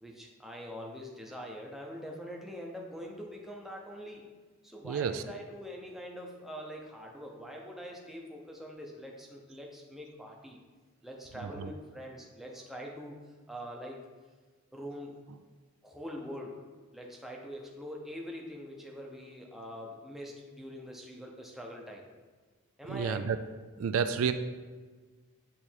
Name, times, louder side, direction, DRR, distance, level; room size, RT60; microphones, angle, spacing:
voice 1, 0.0-4.2 4.6-10.6 11.0-14.0 14.7-15.2 15.8-16.6 16.9-22.0 22.8-23.3, equal, ahead, -1 dB, 0.7 m, -44 dB
voice 2, 4.8-5.2 11.4-11.7 22.9-23.4 23.8-24.3, right 6 dB, 70° right, 10 dB, 0.3 m, -30 dB
8.5 x 3.3 x 4.5 m, 1.4 s
head